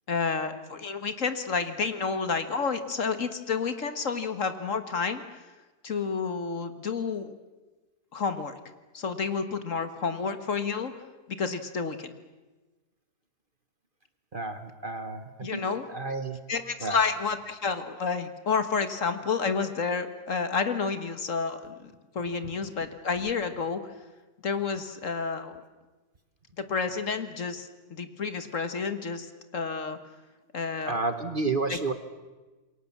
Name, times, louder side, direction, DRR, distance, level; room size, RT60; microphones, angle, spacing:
voice 1, 0.1-5.2 5.8-7.3 8.1-8.6 8.9-10.9 11.3-12.1 15.4-15.9 16.5-23.8 24.4-25.5 26.6-30.0 30.5-30.9 31.7-31.8, left 5 dB, 50° left, 10 dB, 1.7 m, -30 dB
voice 2, 14.3-15.6 15.9-16.4 16.8-17.0 30.9-31.9, right 3 dB, 35° right, 9 dB, 1.3 m, -31 dB
28.0 x 22.5 x 7.3 m, 1.2 s
omnidirectional pair, 1.7 m